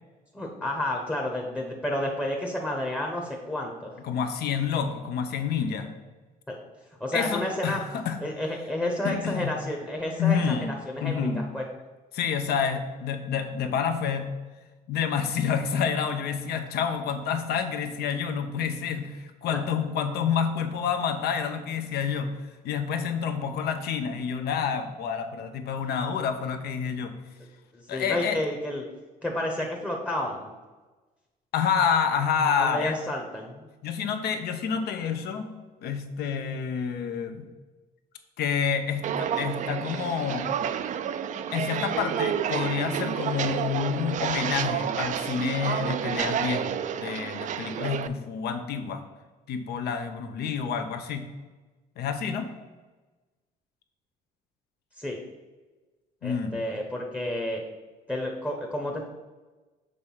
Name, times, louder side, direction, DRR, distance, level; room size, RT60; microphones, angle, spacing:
voice 1, 0.3-3.9 6.5-6.6 7.0-7.8 8.2-11.6 19.5-19.6 27.7-28.8 29.2-30.5 32.6-33.6 55.0-55.2 56.2-57.6 58.1-59.1, left 1 dB, 10° left, 0 dB, 0.9 m, -31 dB
voice 2, 4.0-5.9 7.1-8.2 9.0-9.6 10.2-10.7 11.0-11.5 12.1-14.3 14.9-22.4 22.6-27.1 27.9-28.4 31.5-32.9 33.8-37.4 38.4-40.5 41.5-49.0 49.5-51.3 52.0-52.5 56.2-56.6, left 7 dB, 70° left, 6 dB, 0.8 m, -28 dB
Walk footsteps, 39.0-48.1, right 9 dB, 50° right, 0.4 m, -30 dB
6.6 x 3.3 x 5.6 m, 1.2 s
cardioid pair, 110°, 17 cm